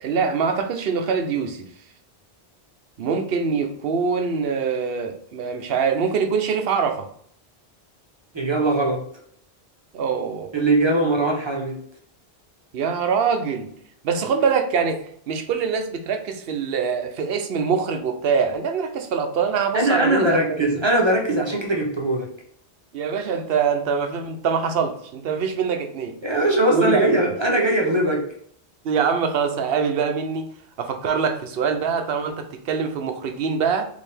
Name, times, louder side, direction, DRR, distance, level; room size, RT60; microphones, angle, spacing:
voice 1, 0.0-1.7 3.0-7.1 9.9-10.5 12.7-13.7 14.0-20.8 22.9-26.2 26.7-27.2 28.8-30.5 30.8-33.9, right 6 dB, 70° right, 7 dB, 0.8 m, -24 dB
voice 2, 8.3-9.0 10.5-11.8 19.7-22.3 26.2-28.2, right 1 dB, 30° right, 0 dB, 0.8 m, -20 dB
4.3 x 2.8 x 3.3 m, 0.62 s
omnidirectional pair, 1.1 m